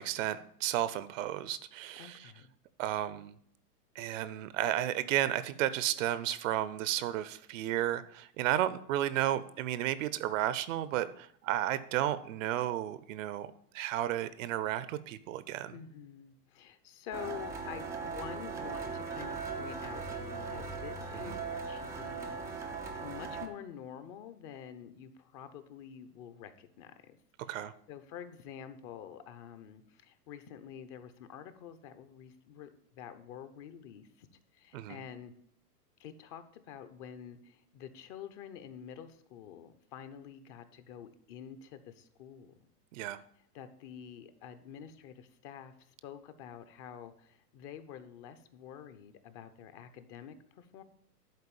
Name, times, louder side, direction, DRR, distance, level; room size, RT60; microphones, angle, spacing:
voice 1, 0.0-2.2 2.8-3.3 4.0-13.5 13.7-15.7 21.3-21.4 27.5-27.7 34.7-35.0 42.9-43.2, right 12 dB, 55° right, 15 dB, 0.7 m, -33 dB
voice 2, 2.0-2.5 15.7-27.2 27.9-35.3 36.0-42.7 43.5-50.8, left 8 dB, 35° left, 11 dB, 0.9 m, -48 dB
sound 1, 17.1-23.5, right 4 dB, 5° right, 0.4 m, -39 dB
11.0 x 4.1 x 7.0 m, 0.66 s
hypercardioid pair, 120°, 48 cm